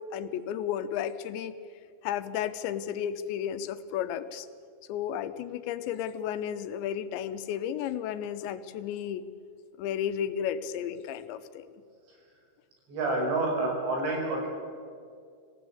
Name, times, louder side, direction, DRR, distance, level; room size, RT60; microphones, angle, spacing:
voice 1, 0.1-1.5 2.0-4.5 4.9-9.3 9.8-11.7, left 9 dB, 90° left, 11 dB, 3.3 m, -33 dB
voice 2, 12.9-14.5, right 2 dB, 80° right, 0 dB, 7.9 m, -28 dB
26.0 x 17.0 x 8.7 m, 2.3 s
omnidirectional pair, 5.0 m